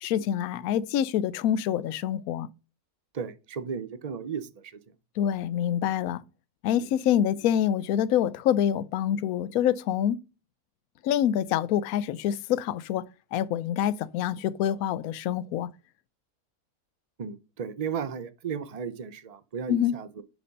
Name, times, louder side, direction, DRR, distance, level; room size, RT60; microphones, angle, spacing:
voice 1, 0.0-2.5 5.2-6.2 6.6-10.2 11.0-13.0 13.3-15.7 19.7-20.0, left 10 dB, 75° left, 1.0 m, -26 dB
voice 2, 3.1-4.8 6.8-6.9 17.2-20.2, right 7 dB, 45° right, 0.5 m, -35 dB
6.9 x 5.1 x 5.3 m
omnidirectional pair, 1.6 m